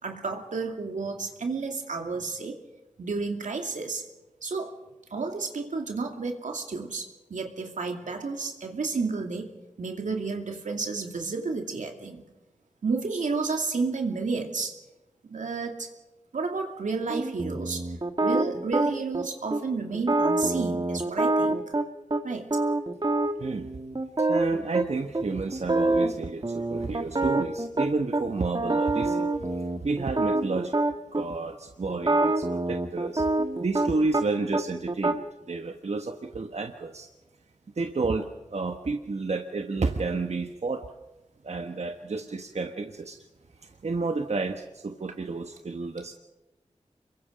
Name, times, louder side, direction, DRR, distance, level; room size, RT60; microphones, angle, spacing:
voice 1, 0.0-2.6 3.0-4.0 4.4-4.7 5.1-9.5 9.8-12.2 12.8-14.8 15.2-15.9 16.3-17.8 18.2-21.6 22.2-22.5, right 4 dB, 85° right, 3 dB, 2.6 m, -31 dB
sound 1, 17.1-19.2 19.5-19.6 19.9-22.2 22.5-24.8 25.1-25.2 25.5-26.1 26.4-28.2 28.6-31.2 31.9-34.2 34.5-35.1, right 2 dB, 35° right, 1.5 m, -26 dB
voice 2, 23.4-23.7 24.2-30.7 31.1-33.3 33.6-37.1 37.8-40.8 41.4-43.2 43.6-46.1, right 3 dB, 60° right, 5 dB, 1.3 m, -31 dB
27.0 x 22.5 x 5.3 m, 1.1 s
cardioid pair, 45°, 13 cm